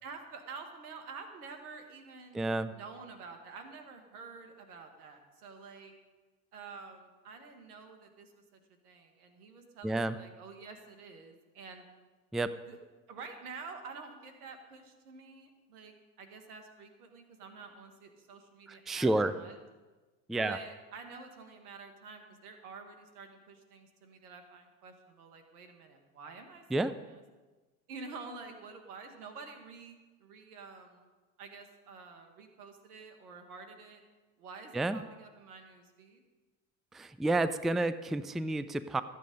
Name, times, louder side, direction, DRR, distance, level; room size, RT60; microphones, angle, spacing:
voice 1, 0.0-5.9 6.5-11.8 12.7-12.8 13.1-19.6 20.3-27.2 27.9-31.1 31.4-34.0 34.4-36.2, right 4 dB, 90° right, 5 dB, 1.8 m, -49 dB
voice 2, 2.3-2.7 9.8-10.1 12.3-12.5 18.9-19.3 20.3-20.6 26.7-26.9 34.7-35.0 36.9-39.0, right 2 dB, ahead, 14 dB, 0.4 m, -30 dB
14.0 x 8.7 x 5.3 m, 1.3 s
hypercardioid pair, 75°, 44 cm